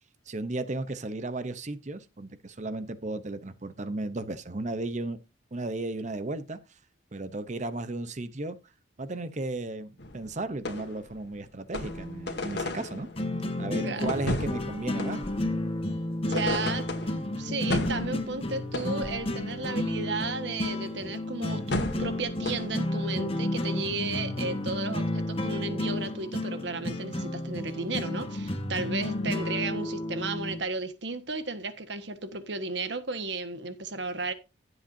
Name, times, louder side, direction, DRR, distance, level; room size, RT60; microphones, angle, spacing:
voice 1, 0.3-5.2 5.5-6.6 7.1-8.6 9.0-13.1 13.6-15.3, right 2 dB, 40° right, 0.8 m, -34 dB
sound 1, 10.0-11.2 11.7-13.2 14.1-15.7 16.3-17.3 17.7-19.4 21.7-22.9, left 2 dB, 60° left, 2.0 m, -33 dB
sound 2, 11.8-30.6, left 1 dB, 30° left, 1.3 m, -32 dB
voice 2, 13.8-14.2 16.3-34.3, right 3 dB, 65° right, 1.5 m, -34 dB
15.5 x 7.9 x 2.7 m
head